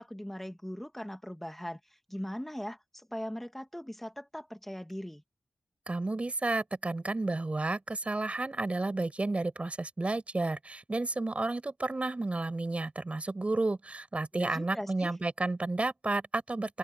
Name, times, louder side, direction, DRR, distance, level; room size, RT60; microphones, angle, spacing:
voice 1, 0.0-1.8 2.1-2.8 3.1-5.2 14.3-15.1, equal, 5° left, 2.6 m, -39 dB
voice 2, 5.9-16.8, right 2 dB, 35° right, 6.0 m, -32 dB
open air
cardioid pair, 55°, 4 cm